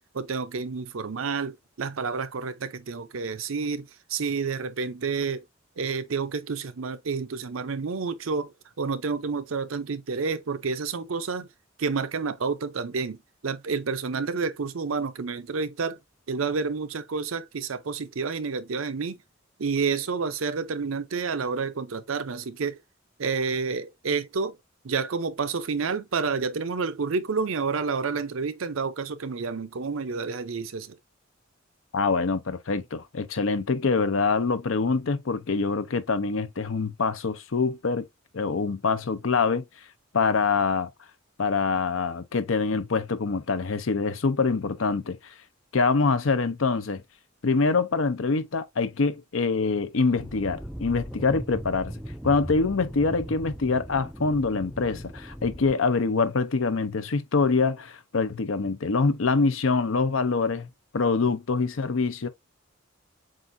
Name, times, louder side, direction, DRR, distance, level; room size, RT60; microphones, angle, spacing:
voice 1, 0.1-5.4 5.8-11.5 11.8-13.2 13.4-16.0 16.3-19.2 19.6-22.8 23.2-24.6 24.8-31.0, right 5 dB, 80° right, 0.6 m, -29 dB
voice 2, 31.9-38.0 38.3-39.6 40.1-40.9 41.4-45.2 45.7-47.0 47.4-51.9 52.2-62.3, left 4 dB, 75° left, 0.7 m, -25 dB
sound 1, 50.2-55.7, equal, ahead, 0.3 m, -38 dB
7.5 x 2.5 x 2.6 m
head